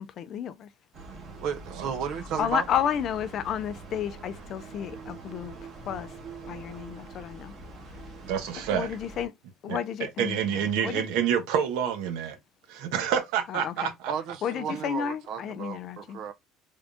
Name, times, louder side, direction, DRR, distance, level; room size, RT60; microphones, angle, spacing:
voice 1, 0.2-0.7 2.4-5.5 5.9-6.2 6.5-7.5 8.7-9.3 9.6-11.0 13.5-13.9 14.4-16.2, left 9 dB, 35° left, 0.4 m, -32 dB
sound 1, 0.9-9.3, right 3 dB, 35° right, 1.0 m, -44 dB
voice 2, 1.4-2.7 14.1-16.3, right 7 dB, 50° right, 0.4 m, -33 dB
voice 3, 8.3-8.9 9.7-12.4 12.7-14.1, right 8 dB, 80° right, 0.9 m, -28 dB
3.5 x 2.6 x 3.3 m
cardioid pair, 175°, 0 cm